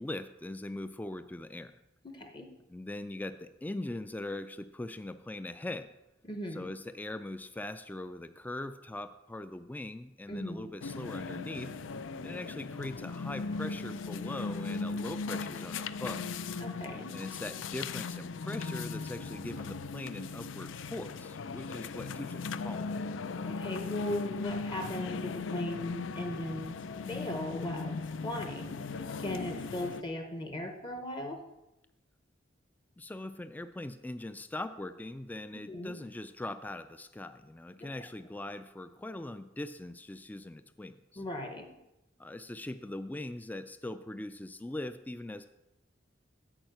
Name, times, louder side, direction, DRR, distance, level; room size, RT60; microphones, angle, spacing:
voice 1, 0.0-1.7 2.7-5.9 6.5-11.7 12.2-16.3 17.1-22.9 33.0-41.2 42.2-45.5, left 1 dB, 10° left, 11 dB, 0.3 m, -41 dB
voice 2, 2.0-2.5 6.2-6.7 10.3-10.7 16.6-17.1 23.4-26.8 27.1-28.0 28.2-31.4 35.7-36.0 37.8-37.9 41.2-41.7, left 1 dB, 25° left, 4 dB, 0.8 m, -38 dB
sound 1, 10.8-30.0, left 4 dB, 80° left, 0.5 m, -38 dB
8.8 x 5.5 x 7.9 m, 0.93 s
head